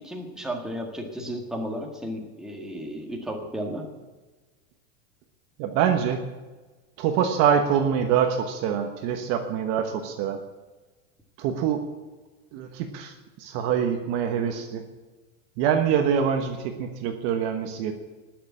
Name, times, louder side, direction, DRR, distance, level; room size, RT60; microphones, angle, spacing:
voice 1, 0.0-3.8, equal, ahead, 0 dB, 1.8 m, -33 dB
voice 2, 5.6-6.2 7.0-10.4 11.4-11.8 12.5-14.8 15.6-17.9, right 8 dB, 40° right, 6 dB, 1.3 m, -25 dB
20.0 x 6.8 x 8.5 m, 1.3 s
supercardioid pair, 165°, 39 cm